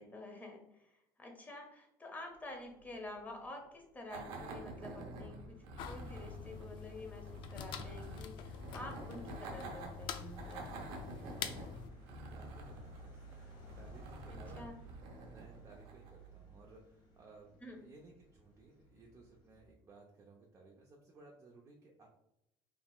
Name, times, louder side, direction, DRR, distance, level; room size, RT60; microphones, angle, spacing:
voice 1, 0.0-10.7 14.3-14.8 17.6-17.8, left 2 dB, 20° left, 2 dB, 0.9 m, -49 dB
sound 1, 2.3-19.7, right 2 dB, 85° left, 1.4 m, -59 dB
sound 2, 4.1-16.3, right 2 dB, 75° right, 0.8 m, -48 dB
sound 3, 5.8-11.9, left 8 dB, 60° left, 0.4 m, -46 dB
voice 2, 12.3-22.1, right 3 dB, 30° right, -1 dB, 0.6 m, -59 dB
3.9 x 3.4 x 2.3 m, 0.85 s
cardioid pair, 120°, 9 cm